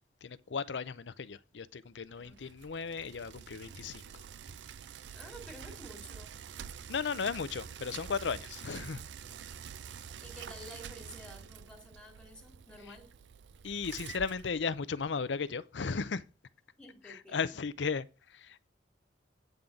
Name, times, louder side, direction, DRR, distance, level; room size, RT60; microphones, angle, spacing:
voice 1, 0.2-4.2 6.9-9.0 12.9-13.0 13.6-16.2 17.0-18.7, left 5 dB, 80° left, 0.6 m, -36 dB
Bicycle, 2.0-15.2, right 7 dB, 75° right, 0.4 m, -47 dB
voice 2, 5.1-6.4 9.2-9.4 10.2-13.1 16.8-17.5, equal, 5° left, 2.4 m, -51 dB
9.4 x 3.9 x 7.1 m
head